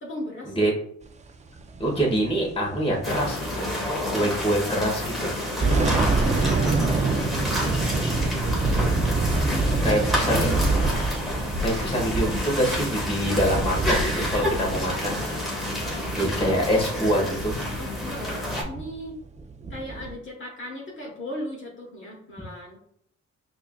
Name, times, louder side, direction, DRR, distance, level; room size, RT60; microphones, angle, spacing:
voice 1, 0.0-0.6 4.2-4.4 5.6-8.7 9.5-10.6 15.8-16.5 17.8-19.2 19.7-22.8, left 1 dB, 40° left, -3 dB, 1.2 m, -38 dB
sound 1, 1.6-4.4 4.7-4.8 5.3-20.1, right 3 dB, 25° right, 0.4 m, -27 dB
voice 2, 1.8-3.8 4.1-5.3 9.8-10.6 11.6-15.2 16.2-17.6, equal, 20° left, -3 dB, 1.3 m, -25 dB
sound 2, 3.0-18.6, left 1 dB, ahead, 1.3 m, -29 dB
5.4 x 2.6 x 2.2 m, 0.69 s
cardioid pair, 90°, 30 cm